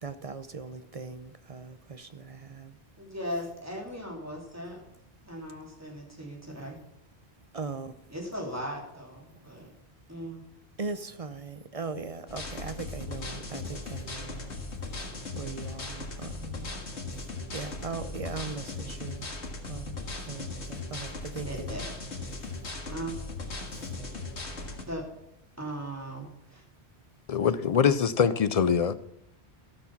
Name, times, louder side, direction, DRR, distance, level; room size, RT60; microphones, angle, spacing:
voice 1, 0.0-2.7 7.5-7.9 10.8-14.5 15.3-16.7 17.5-19.3 19.7-20.0 20.3-21.8, right 4 dB, 40° right, 11 dB, 0.6 m, -39 dB
voice 2, 3.0-4.8 5.3-6.8 8.1-9.7 10.1-10.4 21.4-22.5 22.9-23.1 24.9-25.0 25.6-26.6, equal, 15° right, -1 dB, 3.0 m, -38 dB
sound 1, 12.3-24.8, left 3 dB, 85° left, 2.1 m, -38 dB
voice 3, 27.3-28.9, left 7 dB, 55° left, 15 dB, 0.4 m, -23 dB
16.5 x 6.2 x 5.8 m, 0.79 s
omnidirectional pair, 1.1 m